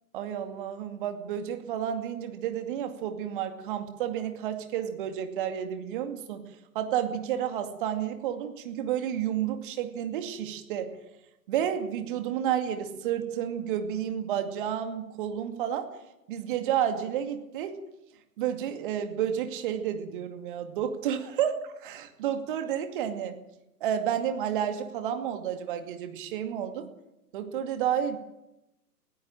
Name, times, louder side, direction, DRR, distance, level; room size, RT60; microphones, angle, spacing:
voice 1, 0.1-6.4 6.7-10.9 11.5-15.9 16.3-17.7 18.4-23.4 23.8-26.9 27.3-28.2, right 9 dB, 30° right, 7 dB, 2.5 m, -31 dB
20.0 x 16.0 x 9.1 m, 0.90 s
figure-of-eight pair, 130°, 49 cm